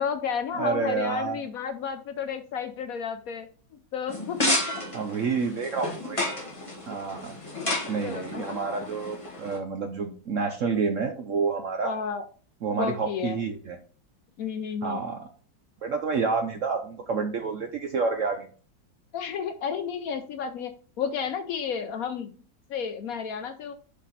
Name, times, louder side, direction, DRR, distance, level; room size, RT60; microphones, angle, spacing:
voice 1, 0.0-3.5 3.9-4.8 8.0-8.6 11.8-12.3 12.8-13.4 14.4-15.0 19.1-22.3 22.7-23.7, left 7 dB, 70° left, 8 dB, 0.8 m, -32 dB
voice 2, 0.5-1.4 4.9-6.3 6.9-7.3 7.9-11.9 12.6-13.8 14.8-15.2 15.8-18.5, right 5 dB, 65° right, 6 dB, 0.7 m, -29 dB
sound 1, 4.1-9.6, left 1 dB, 20° left, 1.6 m, -31 dB
6.6 x 5.1 x 4.0 m, 0.40 s
omnidirectional pair, 2.0 m